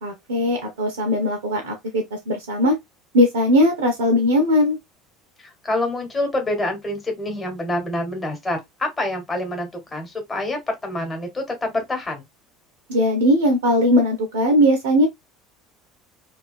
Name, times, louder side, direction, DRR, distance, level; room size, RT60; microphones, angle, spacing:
voice 1, 0.0-2.7 3.1-4.8 12.9-15.1, left 1 dB, 70° right, 0.5 m, -19 dB
voice 2, 5.4-12.2, left 1 dB, 20° left, 1.1 m, -27 dB
2.4 x 2.2 x 2.3 m
figure-of-eight pair, 70°, 0 cm